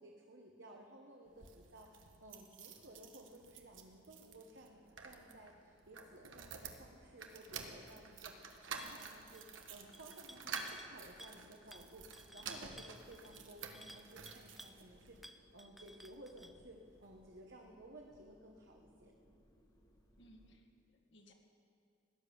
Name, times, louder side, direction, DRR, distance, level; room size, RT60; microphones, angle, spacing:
voice 1, 0.0-19.1, right 1 dB, 65° right, 0 dB, 1.3 m, -57 dB
sound 1, 1.2-15.3 15.9-16.7 17.0-17.1 17.3-17.4, right 5 dB, 85° right, 1.4 m, -51 dB
sound 2, 6.0-20.6, equal, 20° left, 1.4 m, -68 dB
sound 3, 8.8-9.1 9.3-9.6 9.9-10.9 11.2-11.4 11.7-14.8 15.2-16.6, equal, ahead, 0.5 m, -56 dB
voice 2, 20.2-21.3, equal, 65° left, 3 dB, 1.9 m, -63 dB
17.5 x 10.5 x 7.1 m, 2.4 s
head